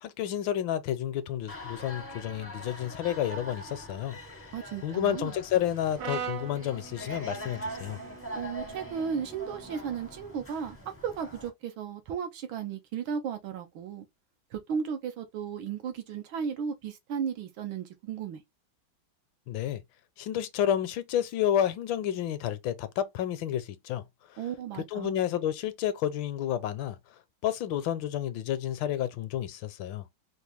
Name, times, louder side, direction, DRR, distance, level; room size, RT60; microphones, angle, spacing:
voice 1, 0.0-4.4 4.8-8.0 19.5-19.8 20.2-24.0 24.8-27.0 27.4-30.0, left 10 dB, 75° left, 1.3 m, -30 dB
sound 1, 1.5-11.5, equal, 15° left, 0.5 m, -43 dB
voice 2, 4.5-5.3 8.3-10.8 11.0-14.1 14.5-18.4 24.4-25.1, right 7 dB, 80° right, 1.6 m, -35 dB
Brass instrument, 6.0-10.2, right 7 dB, 65° right, 1.1 m, -42 dB
4.5 x 2.2 x 3.3 m
omnidirectional pair, 2.2 m